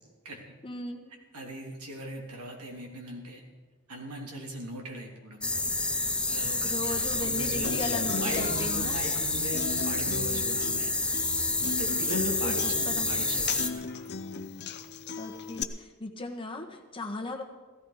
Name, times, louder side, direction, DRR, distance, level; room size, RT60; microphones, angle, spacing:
voice 1, 0.6-1.1 6.6-9.0 12.4-13.3 15.2-17.4, left 2 dB, 25° left, 2 dB, 1.4 m, -37 dB
voice 2, 1.3-3.4 3.9-5.5 6.3-7.8 8.1-11.0 11.7-14.1, right 1 dB, 85° right, 1 dB, 2.8 m, -39 dB
sound 1, 5.4-13.7, left 2 dB, 5° left, 0.7 m, -29 dB
Human voice / Acoustic guitar, 7.6-15.6, left 5 dB, 50° left, 0.7 m, -37 dB
15.5 x 14.0 x 5.0 m, 1.3 s
head